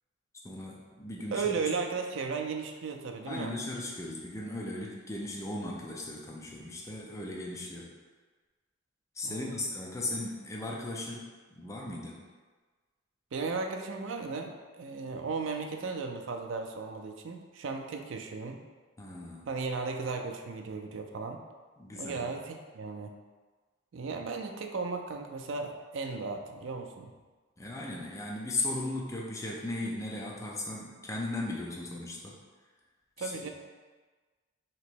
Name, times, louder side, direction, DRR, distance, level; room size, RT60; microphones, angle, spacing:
voice 1, 0.4-1.6 3.3-7.9 9.1-12.2 19.0-19.5 21.8-22.3 27.6-32.4 33.2-33.5, left 2 dB, 15° left, -3 dB, 0.5 m, -37 dB
voice 2, 1.3-3.5 9.2-9.6 13.3-18.6 19.5-21.5 22.0-23.1 23.9-27.1 33.2-33.5, right 4 dB, 65° right, 4 dB, 0.4 m, -35 dB
3.0 x 3.0 x 4.5 m, 1.4 s
head